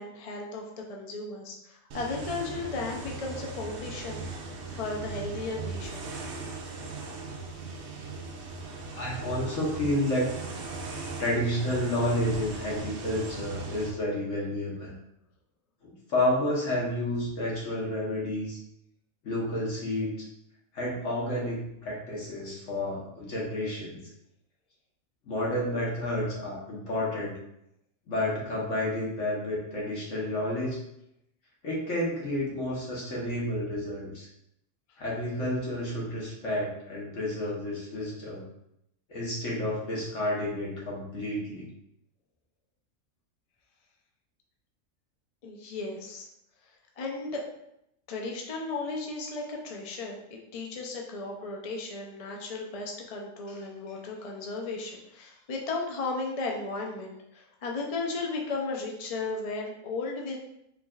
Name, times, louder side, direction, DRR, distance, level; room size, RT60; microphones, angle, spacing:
voice 1, 0.0-4.2 4.7-6.1 45.4-46.3 47.0-47.4 48.1-60.4, left 3 dB, 45° left, 0 dB, 0.5 m, -35 dB
sound 1, 1.9-13.9, right 3 dB, 65° right, 0.9 m, -38 dB
voice 2, 8.9-10.3 11.2-14.9 15.8-18.6 19.2-20.1 20.7-24.0 25.3-27.4 28.1-30.8 31.6-34.3 35.0-38.4 39.1-41.7, left 1 dB, 65° left, -4 dB, 1.5 m, -30 dB
4.7 x 3.2 x 2.4 m, 0.80 s
omnidirectional pair, 1.4 m